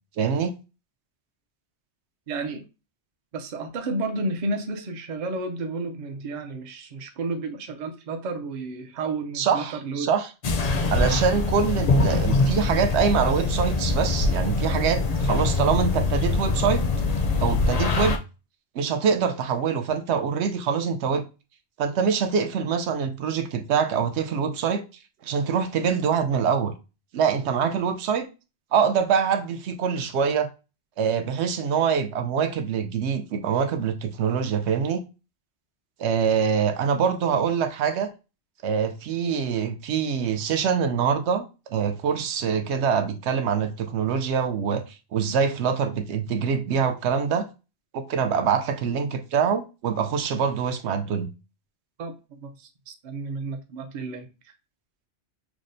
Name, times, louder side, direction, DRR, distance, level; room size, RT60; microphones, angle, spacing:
voice 1, 0.2-0.5 9.3-10.3 10.9-16.8 17.4-18.2 18.7-21.2 21.8-24.8 25.2-26.7 27.1-28.3 28.7-30.5 31.0-35.0 36.0-38.1 38.6-41.5 41.7-47.5 47.9-51.3, right 6 dB, 80° right, 0.9 m, -24 dB
voice 2, 2.3-2.6 3.3-10.1 52.0-54.3, right 3 dB, 50° right, 0.6 m, -32 dB
sound 1, 10.4-18.2, left 3 dB, 50° left, 0.5 m, -23 dB
6.0 x 2.0 x 2.6 m
omnidirectional pair, 1.1 m